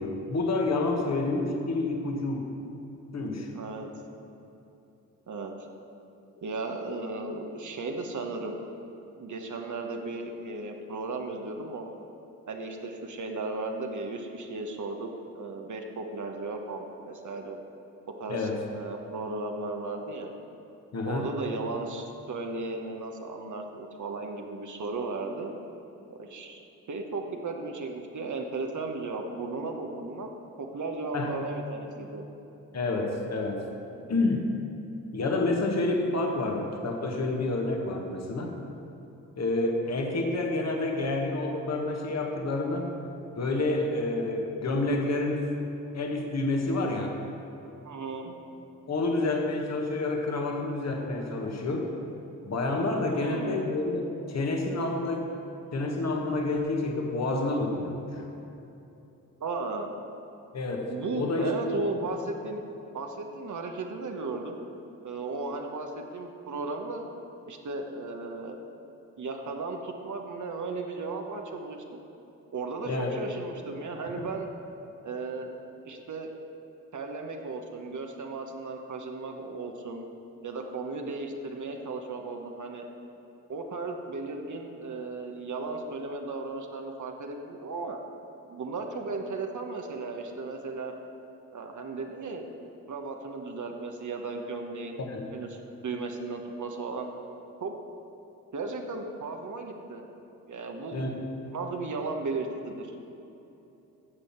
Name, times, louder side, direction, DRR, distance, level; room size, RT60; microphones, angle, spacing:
voice 1, 0.0-2.5 3.1-3.5 18.3-18.6 20.9-21.3 31.1-31.4 32.7-33.7 34.1-34.5 35.1-38.5 39.4-42.9 43.4-45.5 45.9-47.1 48.9-51.9 52.4-55.3 55.7-58.2 60.5-61.8 72.8-73.1 74.2-74.3 95.0-95.3 100.9-101.2, left 2 dB, 40° left, 1 dB, 1.5 m, -29 dB
voice 2, 3.5-3.9 5.3-5.5 6.4-8.5 9.2-11.9 12.5-15.1 15.3-17.6 18.2-20.3 21.0-25.5 26.1-26.6 26.9-30.3 30.6-32.2 47.8-48.3 53.1-53.7 59.4-59.9 60.9-62.7 62.9-64.6 65.0-67.0 67.5-68.6 69.2-72.0 72.5-74.5 75.0-75.5 75.8-76.3 76.9-80.0 80.4-82.8 83.5-88.0 88.5-90.9 91.5-92.5 92.9-95.0 95.3-97.1 97.6-97.7 98.5-100.0 100.5-101.0 101.5-102.9, right 3 dB, 50° right, 3 dB, 1.2 m, -35 dB
9.8 x 7.0 x 5.9 m, 3.0 s
supercardioid pair, 50°, 39 cm